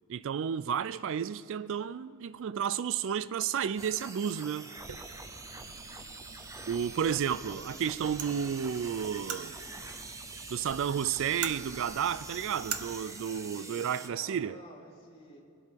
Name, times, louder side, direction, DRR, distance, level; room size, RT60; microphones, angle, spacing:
voice 1, 0.1-4.7 6.7-9.6 10.5-14.6, right 8 dB, 60° right, 0.3 m, -32 dB
sound 1, 3.8-14.1, right 3 dB, 15° right, 0.7 m, -45 dB
sound 2, 4.8-12.8, right 7 dB, 75° right, 0.9 m, -44 dB
voice 2, 13.5-15.4, left 1 dB, 30° left, 2.9 m, -52 dB
23.0 x 8.2 x 5.2 m
head